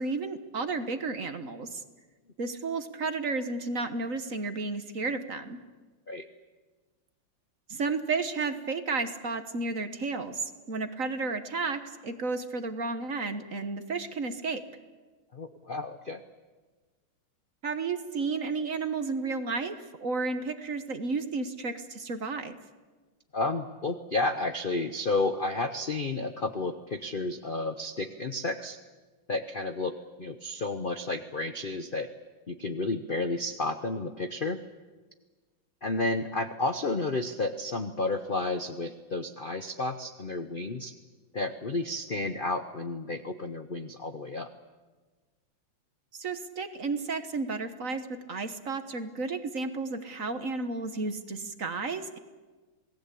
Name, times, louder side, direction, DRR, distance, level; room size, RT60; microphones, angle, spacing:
voice 1, 0.0-1.8 2.4-5.6 7.7-14.6 17.6-22.6 46.1-52.2, right 4 dB, 45° right, 9 dB, 1.4 m, -32 dB
voice 2, 15.3-16.2 23.3-28.8 29.3-29.9 30.2-32.1 32.5-34.6 35.8-40.9 41.3-44.5, left 2 dB, 60° left, 9 dB, 0.5 m, -31 dB
28.0 x 18.5 x 8.4 m, 1.3 s
omnidirectional pair, 2.4 m